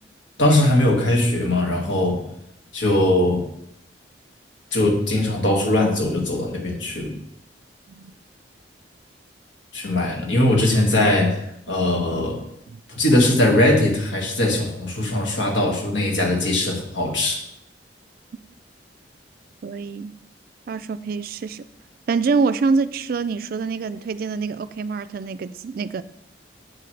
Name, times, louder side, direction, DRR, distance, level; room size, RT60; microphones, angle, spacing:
voice 1, 0.4-2.2 2.7-3.4 4.7-7.2 9.7-11.4 11.7-12.4 12.9-17.4, left 1 dB, 90° left, 0 dB, 2.0 m, -20 dB
voice 2, 19.6-20.1 20.7-21.6 22.1-26.0, right 4 dB, 50° right, 14 dB, 0.3 m, -25 dB
7.7 x 7.5 x 3.3 m, 0.77 s
head